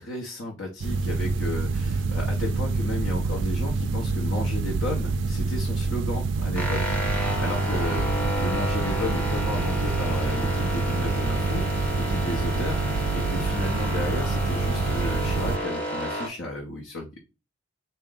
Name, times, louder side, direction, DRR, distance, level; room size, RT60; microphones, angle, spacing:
voice 1, 0.1-17.2, left 2 dB, 70° left, 0 dB, 0.8 m, -33 dB
sound 1, 0.8-15.6, right 3 dB, 60° right, 0.3 m, -27 dB
sound 2, 6.6-16.3, equal, 10° left, 0.7 m, -31 dB
3.8 x 2.1 x 3.7 m, 0.28 s
head